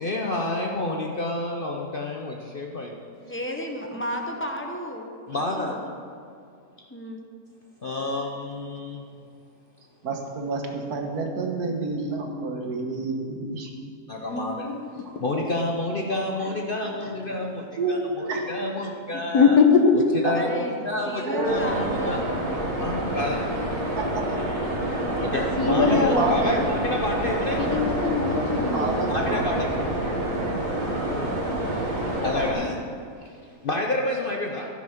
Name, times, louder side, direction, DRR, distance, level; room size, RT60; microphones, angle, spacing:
voice 1, 0.0-3.1 5.3-5.8 7.8-9.1 14.1-14.7 15.2-19.6 20.1-22.2 22.8-23.7 25.2-27.7 29.1-29.7 30.5-31.4 32.2-32.8 33.2-34.7, left 2 dB, 45° left, 0 dB, 0.7 m, -29 dB
voice 2, 3.1-5.8 6.9-7.2 18.7-18.8 19.1-19.2 20.3-20.7 21.1-22.2 25.0-25.2, left 1 dB, 10° left, 1 dB, 0.6 m, -33 dB
voice 3, 10.0-13.7 15.1-15.2 16.4-16.5 17.2-17.5 17.8-18.5 20.2-20.4 21.2-21.9 24.0-24.5 25.7-26.7 28.7-29.7, right 3 dB, 70° right, 2 dB, 1.7 m, -29 dB
voice 4, 14.3-14.8 19.3-19.9 25.6-26.7 27.6-29.1, left 5 dB, 70° left, 4 dB, 1.4 m, -21 dB
sound 1, 21.4-32.5, right 1 dB, 55° right, 2.2 m, -28 dB
14.0 x 6.2 x 5.8 m, 2.3 s
omnidirectional pair, 1.7 m